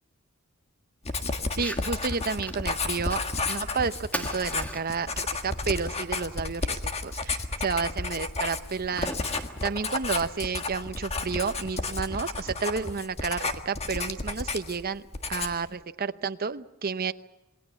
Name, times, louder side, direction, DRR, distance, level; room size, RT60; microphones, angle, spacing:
Writing, 1.0-14.8 15.1-15.7, left 3 dB, 30° left, 1.6 m, -32 dB
Fire, 1.5-10.5, equal, 5° left, 1.6 m, -42 dB
voice 1, 1.6-3.2 3.5-15.0 15.3-17.1, right 5 dB, 45° right, 11 dB, 0.8 m, -31 dB
27.5 x 20.5 x 7.2 m, 1.0 s
head